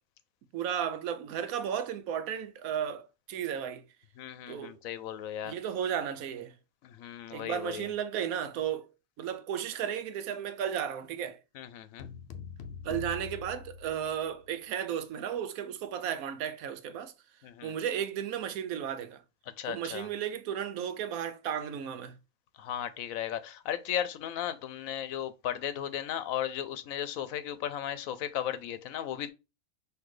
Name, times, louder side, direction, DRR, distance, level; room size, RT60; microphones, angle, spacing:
voice 1, 0.5-3.8 4.5-4.8 5.4-6.6 7.3-8.9 9.2-11.4 12.8-17.1 17.6-19.2 19.6-22.2, right 9 dB, 85° right, 1.1 m, -34 dB
voice 2, 4.2-5.5 6.8-7.9 11.5-12.1 17.4-17.7 19.6-20.1 22.6-29.3, left 10 dB, 80° left, 1.0 m, -36 dB
sound 1, 12.0-14.5, left 6 dB, 60° left, 0.7 m, -43 dB
5.9 x 2.9 x 3.1 m
omnidirectional pair, 1.5 m